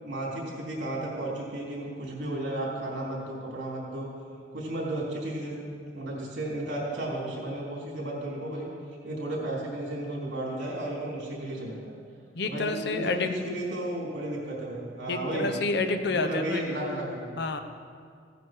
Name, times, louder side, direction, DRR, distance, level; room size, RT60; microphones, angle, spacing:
voice 1, 0.0-4.1 4.5-5.6 5.9-8.7 9.0-11.9 12.4-15.5 16.0-17.6, right 1 dB, 70° right, -4 dB, 3.6 m, -33 dB
voice 2, 12.3-13.3 15.1-17.0 17.4-17.6, left 3 dB, 65° left, 7 dB, 0.8 m, -29 dB
15.5 x 9.3 x 4.7 m, 2.1 s
head